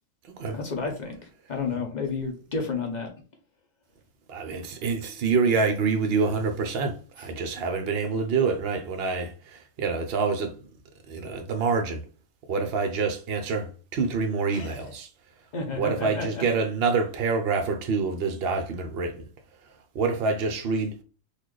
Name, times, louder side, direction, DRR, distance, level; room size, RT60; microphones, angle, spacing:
voice 1, 0.5-1.2 1.5-3.1 14.5-14.9 15.5-16.4, left 4 dB, 45° left, 0.6 m, -31 dB
voice 2, 4.3-10.5 11.1-12.0 12.5-15.1 15.7-19.2 19.9-21.0, right 4 dB, 60° right, 0.7 m, -26 dB
4.0 x 2.4 x 3.1 m
omnidirectional pair, 1.5 m